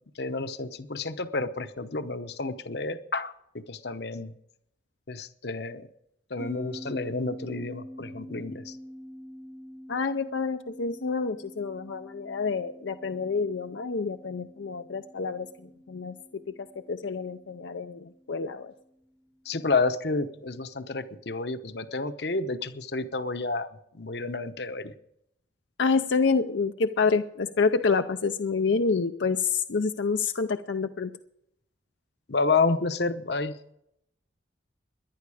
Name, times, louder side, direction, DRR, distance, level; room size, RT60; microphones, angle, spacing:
voice 1, 0.1-4.3 5.1-5.9 6.3-8.8 19.4-23.7 23.9-24.9 32.3-33.7, left 3 dB, 65° left, 11 dB, 0.9 m, -30 dB
sound 1, 6.4-19.2, equal, 15° right, 0.8 m, -46 dB
voice 2, 9.9-15.5 15.9-18.7 25.8-31.1, left 4 dB, 85° left, 7 dB, 0.6 m, -28 dB
18.5 x 11.5 x 4.9 m, 0.77 s
head